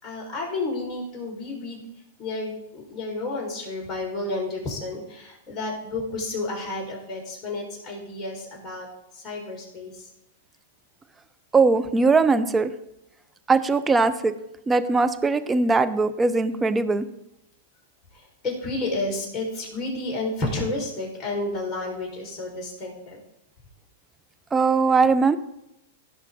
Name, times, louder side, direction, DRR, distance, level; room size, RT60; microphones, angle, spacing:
voice 1, 0.0-1.8 2.2-8.9 9.1-9.9 18.4-23.2, left 2 dB, 30° left, -2 dB, 4.3 m, -31 dB
voice 2, 11.5-12.7 13.5-14.3 14.7-17.1 24.5-25.4, right 4 dB, 15° right, 11 dB, 0.6 m, -20 dB
17.0 x 5.8 x 3.7 m, 0.84 s
hypercardioid pair, 110°, 0 cm